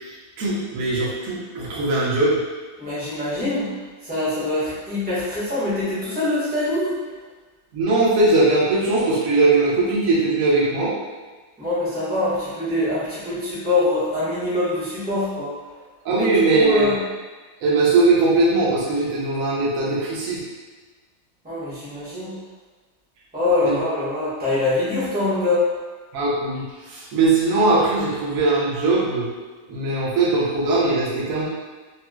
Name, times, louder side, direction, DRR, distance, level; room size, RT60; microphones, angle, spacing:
voice 1, 0.4-2.4 7.7-10.9 16.0-17.0 17.6-20.4 23.6-23.8 26.1-29.3 29.7-31.5, right 2 dB, 60° right, -7 dB, 0.8 m, -20 dB
voice 2, 2.8-3.7 4.1-6.9 11.6-15.5 16.1-16.3 16.5-16.9 21.4-22.3 23.3-25.6, left 2 dB, 10° right, -12 dB, 0.4 m, -24 dB
4.0 x 2.1 x 2.3 m, 1.3 s
omnidirectional pair, 2.2 m